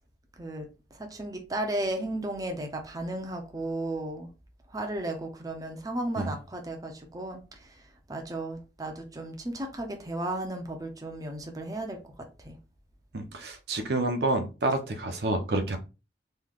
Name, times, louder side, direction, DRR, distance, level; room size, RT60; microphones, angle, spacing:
voice 1, 0.4-0.7 1.0-4.3 4.7-12.0 12.4-12.6, right 1 dB, 20° right, 0.6 m, -34 dB
voice 2, 13.1-15.8, right 2 dB, 65° right, 0.6 m, -28 dB
3.7 x 3.2 x 2.3 m
head